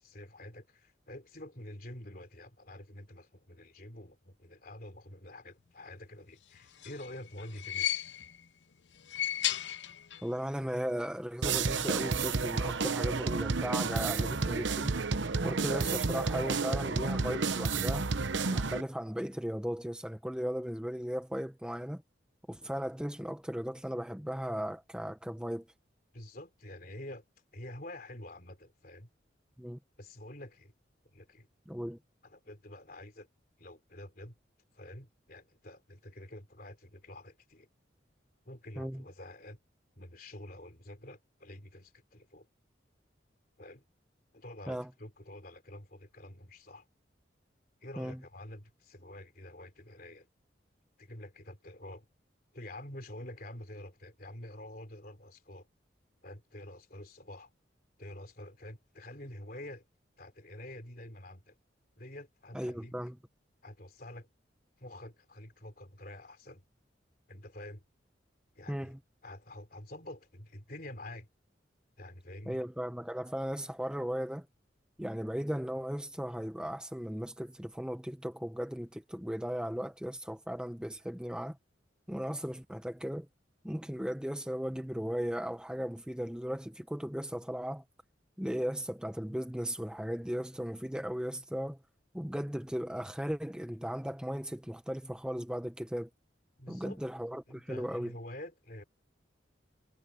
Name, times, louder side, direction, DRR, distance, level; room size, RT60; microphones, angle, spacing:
voice 1, 0.0-8.1 26.1-27.2 27.5-29.1 30.0-30.7 31.1-31.5 32.2-33.3 33.6-34.3 34.7-37.7 38.5-39.6 40.0-42.5 43.6-43.8 44.3-46.9 47.8-50.3 51.0-52.1 52.5-55.7 56.2-57.5 58.0-59.8 60.2-61.6 62.0-62.9 63.6-64.3 64.8-66.6 67.3-67.8 68.6-68.9 69.2-71.3 72.0-72.6 80.9-81.0 96.6-97.0 97.5-98.8, left 1 dB, 50° left, 3.7 m, -47 dB
sound 1, 6.5-8.5 8.9-10.4 10.6-10.7 11.8-11.9, left 12 dB, 75° left, 0.7 m, -35 dB
voice 2, 10.2-15.0 15.4-18.1 18.5-22.0 22.5-25.7 29.6-29.8 31.7-32.0 38.8-39.0 44.7-44.9 48.0-48.2 62.5-63.2 68.7-69.0 72.5-74.5 75.0-81.6 82.1-83.3 83.6-87.8 88.4-91.8 92.1-96.1 96.7-98.1, equal, 5° right, 0.7 m, -36 dB
sound 2, 11.4-18.8, right 4 dB, 80° right, 0.9 m, -31 dB
head